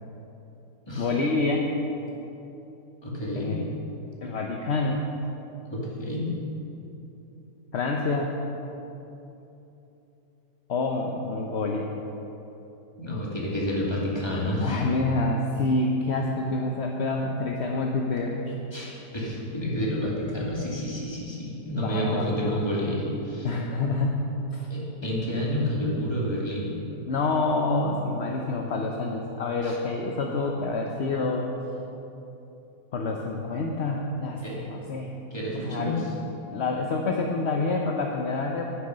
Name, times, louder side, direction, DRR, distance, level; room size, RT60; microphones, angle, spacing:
voice 1, 1.0-1.7 3.3-3.6 4.2-5.1 7.7-8.3 10.7-11.9 14.6-18.5 21.7-22.3 23.4-24.7 27.1-31.5 32.9-35.1 35.6-36.0 36.5-38.7, left 3 dB, 55° left, 1 dB, 0.8 m, -27 dB
voice 2, 3.0-3.5 5.7-6.3 13.0-14.8 18.7-23.5 24.7-26.7 29.6-29.8 34.4-34.6 35.3-36.0, equal, 15° left, -5 dB, 2.3 m, -29 dB
10.0 x 9.4 x 6.5 m, 3.0 s
omnidirectional pair, 1.9 m